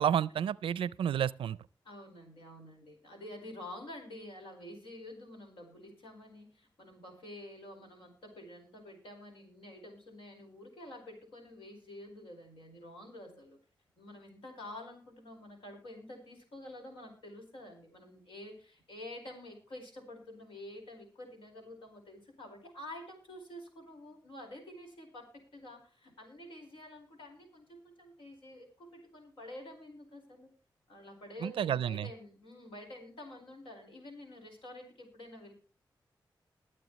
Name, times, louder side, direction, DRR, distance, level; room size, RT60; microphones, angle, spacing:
voice 1, 0.0-1.6 31.4-32.1, right 9 dB, 90° right, 0.4 m, -30 dB
voice 2, 1.8-13.6 14.0-30.5 30.9-35.5, left 1 dB, 85° left, 4.8 m, -49 dB
22.0 x 7.6 x 3.1 m
cardioid pair, 50°, 9 cm